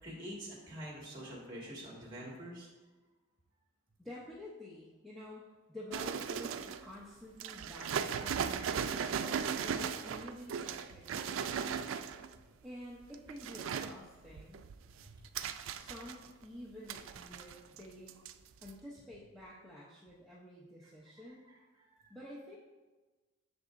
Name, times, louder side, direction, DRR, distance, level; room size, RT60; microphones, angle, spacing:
voice 1, 0.0-2.7 9.6-9.8 15.0-15.1 20.8-20.9 21.3-21.4 21.8-22.1, equal, 20° right, -4 dB, 1.8 m, -47 dB
voice 2, 4.0-5.4 5.7-11.8 12.6-14.7 15.7-18.2 18.6-21.4 22.1-22.6, left 1 dB, ahead, -7 dB, 0.7 m, -50 dB
sound 1, 5.9-6.9 7.4-12.4 13.0-13.9 14.4-16.4 16.9-17.8 18.1-18.3 18.6-18.7, right 7 dB, 80° right, 0.3 m, -37 dB
7.5 x 6.7 x 2.5 m, 1.2 s
head